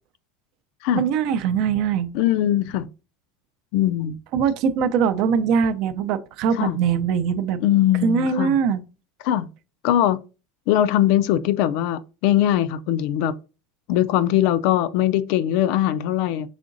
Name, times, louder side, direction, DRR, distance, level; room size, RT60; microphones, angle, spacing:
voice 1, 0.9-2.1 4.3-7.6 8.0-8.8, right 7 dB, 55° right, 0.5 m, -22 dB
voice 2, 2.1-2.9 3.7-4.2 6.5-6.8 7.6-8.6 9.2-9.5 9.8-10.2 10.7-13.3 13.9-16.5, left 12 dB, 65° left, 0.4 m, -21 dB
4.9 x 3.7 x 2.5 m
supercardioid pair, 135°, 0 cm